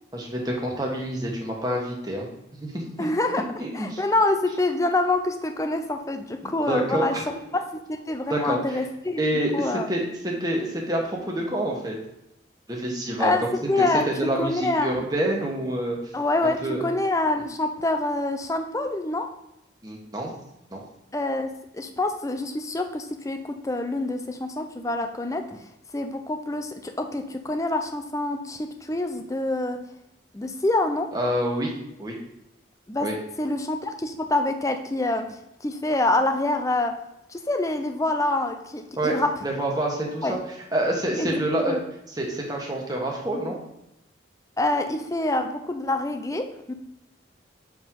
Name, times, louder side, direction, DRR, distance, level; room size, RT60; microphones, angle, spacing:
voice 1, 0.1-2.3 2.6-3.1 3.6-4.0 6.4-7.2 8.3-8.8 9.2-12.0 12.7-13.3 13.8-13.9 14.2-16.0 16.6-16.8 19.8-20.3 20.7-20.8 31.1-31.7 32.0-32.2 33.0-33.2 39.0-40.4 40.7-41.8 42.1-43.6, right 1 dB, 20° right, -1 dB, 1.4 m, -27 dB
voice 2, 3.0-3.4 3.7-7.2 7.5-9.2 9.5-9.9 13.2-15.1 16.1-19.3 21.1-25.6 25.9-29.8 30.3-31.1 32.9-33.1 33.4-37.0 37.3-39.4 40.2-40.4 41.2-41.8 44.6-46.7, left 2 dB, 15° left, 6 dB, 0.5 m, -26 dB
7.1 x 4.7 x 3.8 m, 0.85 s
head